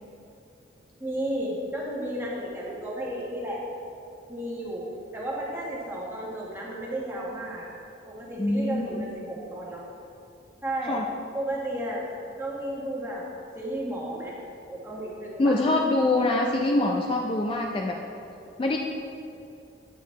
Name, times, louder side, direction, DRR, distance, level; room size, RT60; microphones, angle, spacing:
voice 1, 1.0-3.6 4.3-4.8 5.1-7.7 8.1-9.8 10.6-11.0 11.3-12.0 12.4-13.2 13.5-14.4 14.7-15.5, right 1 dB, 10° right, -5 dB, 1.2 m, -33 dB
voice 2, 8.4-8.9 10.9-11.0 15.4-18.0 18.6-18.8, left 2 dB, 30° left, 1 dB, 0.3 m, -24 dB
8.4 x 7.7 x 3.1 m, 2.7 s
head